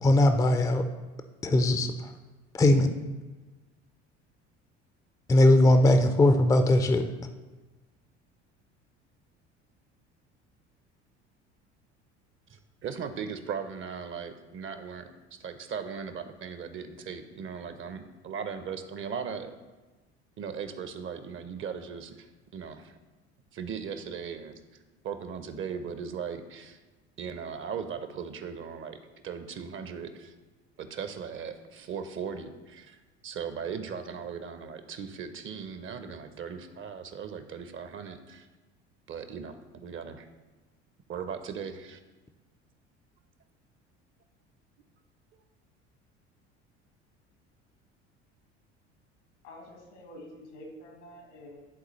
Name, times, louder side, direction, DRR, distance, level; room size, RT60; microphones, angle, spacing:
voice 1, 0.0-0.8 1.4-2.1 2.5-2.9 5.3-7.0, left 1 dB, 10° left, 7 dB, 0.4 m, -20 dB
voice 2, 12.5-15.1 15.4-19.6 20.4-22.9 23.5-24.6 25.0-26.8 27.2-30.3 30.8-38.5 39.1-40.3 41.1-42.0, right 6 dB, 35° right, 9 dB, 0.7 m, -38 dB
voice 3, 49.4-51.7, left 1 dB, 80° left, 1 dB, 1.6 m, -47 dB
11.0 x 3.8 x 3.1 m, 1.2 s
hypercardioid pair, 65°, 35 cm